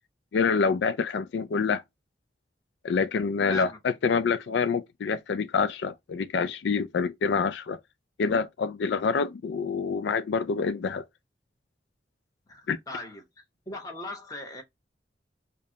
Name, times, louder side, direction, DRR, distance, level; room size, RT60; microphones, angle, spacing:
voice 1, 0.3-1.8 2.8-7.8 8.2-11.0 12.7-12.8, left 5 dB, 80° left, 0.4 m, -26 dB
voice 2, 3.5-3.8 12.5-13.2 13.7-14.6, left 2 dB, 20° left, 0.9 m, -38 dB
5.0 x 2.2 x 2.7 m
head